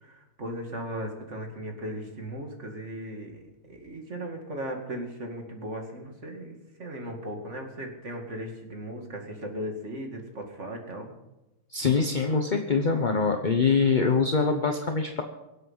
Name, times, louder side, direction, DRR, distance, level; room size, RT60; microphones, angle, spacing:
voice 1, 0.0-11.1, equal, 35° right, 3 dB, 2.6 m, -37 dB
voice 2, 11.7-15.2, left 4 dB, 35° left, 4 dB, 0.8 m, -24 dB
24.0 x 8.1 x 5.6 m, 0.98 s
omnidirectional pair, 2.1 m